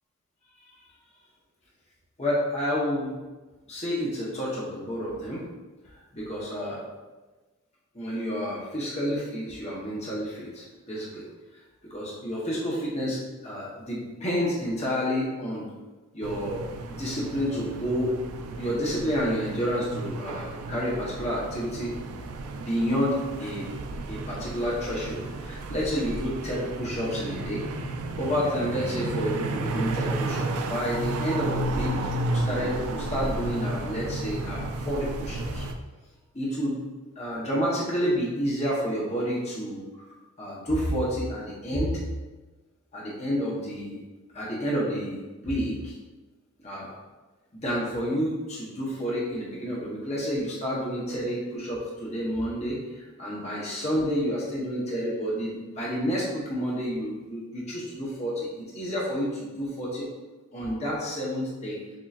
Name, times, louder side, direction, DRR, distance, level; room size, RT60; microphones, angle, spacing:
voice 1, 2.2-3.1 3.7-5.5 5.9-6.8 7.9-11.2 11.9-15.7 16.1-16.6 16.9-18.2 18.6-21.9 22.6-23.7 24.1-27.6 28.2-35.6 36.3-36.8 37.2-42.0 42.9-44.0 44.3-45.9 46.6-46.9 47.5-58.5 58.7-60.1 60.5-61.8, equal, 30° left, -6 dB, 1.0 m, -30 dB
sound 1, 16.2-35.7, right 2 dB, 80° right, 0.4 m, -32 dB
6.7 x 2.9 x 2.5 m, 1.2 s
head